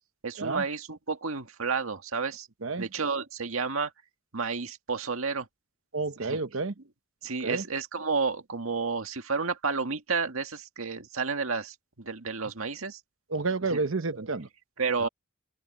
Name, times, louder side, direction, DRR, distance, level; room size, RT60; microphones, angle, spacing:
voice 1, 0.2-2.5 2.8-3.9 4.3-5.5 6.2-6.4 7.2-13.0 13.7-13.8 14.1-14.3 14.8-15.1, right 4 dB, 90° right, 1.9 m, -31 dB
voice 2, 5.9-6.7 7.4-7.6 13.3-14.5 15.0-15.1, right 3 dB, 75° right, 1.0 m, -30 dB
open air
head